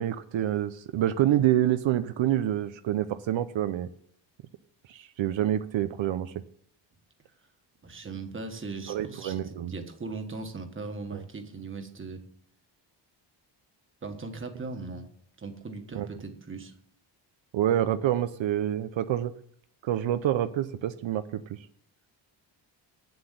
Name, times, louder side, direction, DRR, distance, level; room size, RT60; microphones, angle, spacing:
voice 1, 0.0-3.9 4.9-6.3 8.9-9.7 11.1-11.2 15.9-16.1 17.5-19.3 19.8-21.6, right 12 dB, 80° right, 11 dB, 0.7 m, -27 dB
voice 2, 7.8-12.2 14.0-15.1 15.4-16.7, right 3 dB, 25° right, 5 dB, 1.5 m, -39 dB
8.9 x 7.8 x 9.2 m, 0.65 s
wide cardioid pair, 165°, 45 cm